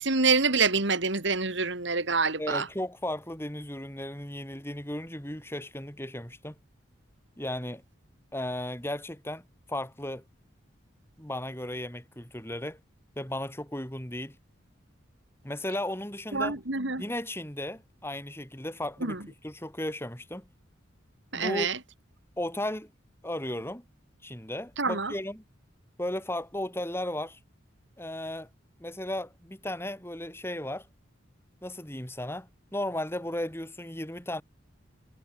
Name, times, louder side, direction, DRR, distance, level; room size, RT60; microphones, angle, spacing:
voice 1, 0.0-2.7 16.3-17.0 19.0-19.2 21.3-21.8 24.8-25.1, right 4 dB, 60° right, 3.0 m, -26 dB
voice 2, 2.4-6.6 7.4-7.8 8.3-9.4 9.7-10.2 11.2-12.8 13.2-14.3 15.4-16.6 17.0-19.2 19.4-20.4 21.3-21.7 22.4-22.9 23.2-23.8 24.2-25.4 26.0-27.4 28.0-28.5 28.8-30.9 31.6-34.4, left 1 dB, 10° left, 5.0 m, -35 dB
head